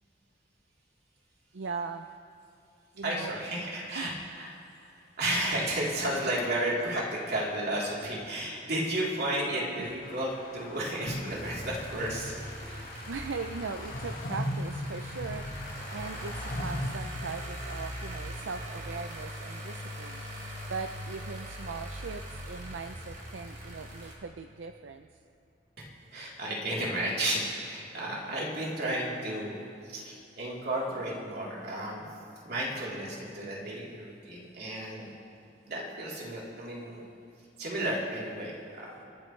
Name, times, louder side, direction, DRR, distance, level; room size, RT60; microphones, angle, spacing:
voice 1, 1.5-2.1 2.9-3.3 3.9-4.2 9.8-9.9 12.7-20.2 20.7-25.1, right 4 dB, 80° right, 7 dB, 0.5 m, -40 dB
voice 2, 3.0-4.5 4.8-12.4 25.8-29.6 29.8-32.0 32.4-35.1 35.7-37.0 37.6-39.0, right 1 dB, 60° right, -5 dB, 3.5 m, -33 dB
sound 1, 10.0-16.9, left 1 dB, 50° left, 1.6 m, -39 dB
sound 2, 11.3-24.2, equal, 45° right, 3.1 m, -41 dB
29.0 x 12.0 x 3.3 m, 2.8 s
head